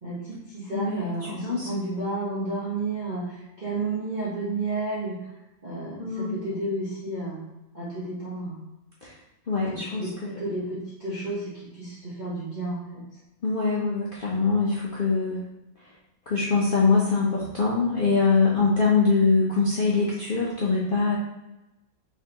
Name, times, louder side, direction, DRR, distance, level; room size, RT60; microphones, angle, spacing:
voice 1, 0.0-5.3 5.6-7.5 7.7-8.6 9.6-13.0, right 2 dB, 30° right, -10 dB, 1.1 m, -32 dB
voice 2, 0.7-1.1 1.4-1.8 6.0-6.4 9.0-9.1 9.5-10.4 13.4-15.4 16.3-21.2, left 4 dB, 70° left, -5 dB, 0.5 m, -23 dB
4.6 x 3.6 x 2.9 m, 0.95 s
omnidirectional pair, 2.0 m